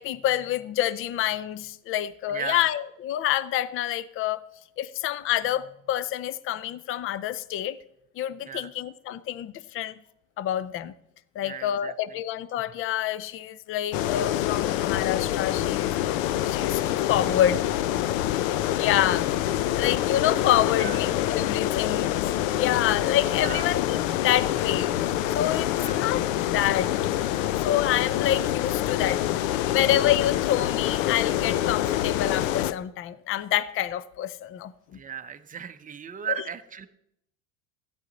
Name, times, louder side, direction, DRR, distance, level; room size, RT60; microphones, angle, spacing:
voice 1, 0.0-4.4 4.8-7.8 8.2-9.9 10.4-10.9 11.4-16.0 16.5-17.6 18.7-22.3 22.6-26.9 27.5-29.2 29.6-34.7 36.3-36.4, left 12 dB, 35° left, 0.6 m, -27 dB
voice 2, 2.3-2.7 8.4-8.7 11.4-11.9 20.8-21.0 23.4-23.8 25.7-26.1 34.9-36.9, right 8 dB, 20° right, 0.8 m, -36 dB
sound 1, 13.9-32.7, left 13 dB, 75° left, 0.7 m, -26 dB
13.5 x 9.3 x 4.1 m
supercardioid pair, 105°, 39 cm